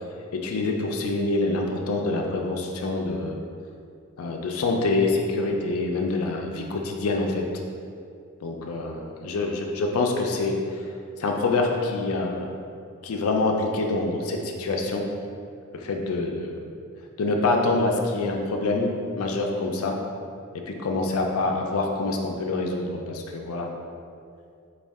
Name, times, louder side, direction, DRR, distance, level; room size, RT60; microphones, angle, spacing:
voice 1, 0.3-3.4 4.2-7.4 8.4-10.6 11.2-12.5 13.0-15.1 15.7-16.6 17.2-20.0 20.7-23.7, left 2 dB, 85° left, 2 dB, 0.4 m, -26 dB
4.3 x 2.3 x 3.4 m, 2.3 s
head